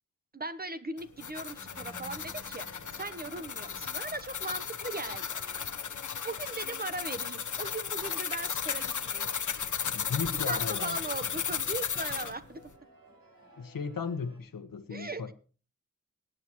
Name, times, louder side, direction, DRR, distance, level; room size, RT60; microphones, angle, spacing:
voice 1, 0.3-2.7 3.0-5.4 6.2-9.4 10.4-12.6 14.9-15.3, right 2 dB, 25° right, 11 dB, 1.1 m, -39 dB
sound 1, 1.0-12.3, left 7 dB, 65° left, 1.1 m, -35 dB
sound 2, 1.4-14.4, right 2 dB, 80° right, 6.3 m, -55 dB
voice 2, 9.9-11.0 13.6-15.3, left 5 dB, 80° left, 9 dB, 1.4 m, -36 dB
22.0 x 9.3 x 3.1 m, 0.37 s
wide cardioid pair, 85°, 33 cm